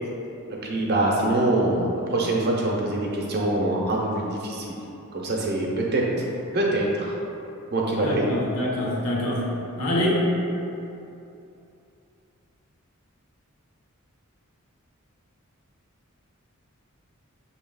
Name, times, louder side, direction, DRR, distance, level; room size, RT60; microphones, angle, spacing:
voice 1, 0.6-4.8 5.1-6.0 6.5-7.1 7.7-8.3, right 2 dB, 45° right, -2 dB, 0.6 m, -24 dB
voice 2, 8.0-10.2, left 1 dB, 85° left, -5 dB, 0.9 m, -25 dB
6.9 x 2.8 x 2.3 m, 2.7 s
head